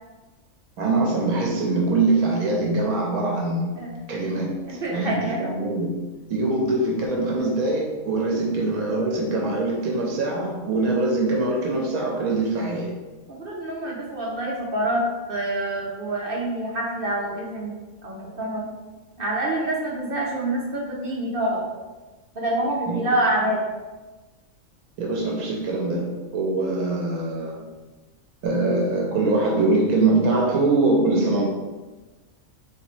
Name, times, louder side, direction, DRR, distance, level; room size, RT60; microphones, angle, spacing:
voice 1, 0.8-3.7 4.1-13.0 22.9-23.0 23.4-23.5 25.0-27.7 28.4-31.4, right 2 dB, 85° right, -1 dB, 1.1 m, -23 dB
voice 2, 4.6-5.4 13.3-17.7 18.0-18.7 19.2-21.6 22.3-23.6, right 1 dB, 50° right, -3 dB, 0.8 m, -26 dB
3.9 x 3.3 x 3.1 m, 1.2 s
omnidirectional pair, 1.5 m